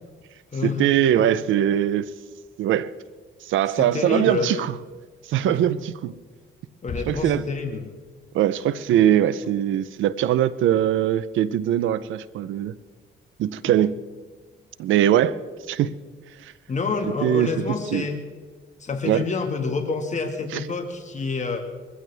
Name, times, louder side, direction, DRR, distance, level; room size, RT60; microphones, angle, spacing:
voice 1, 0.6-2.1 2.6-2.9 3.4-4.7 5.3-6.1 7.1-7.4 8.3-12.7 13.4-14.0 14.8-15.4 15.7-15.9 16.4-16.5 17.2-17.5 17.9-18.1 19.0-19.3 20.5-20.6, right 11 dB, 80° right, 0.6 m, -21 dB
voice 2, 3.8-4.6 5.5-5.6 6.8-7.9 13.6-13.7 16.7-18.2 18.8-21.6, left 4 dB, 35° left, 1.9 m, -28 dB
Bass drum, 6.9-8.3, left 4 dB, 70° left, 2.8 m, -38 dB
22.5 x 15.5 x 3.4 m
cardioid pair, 90°, 20 cm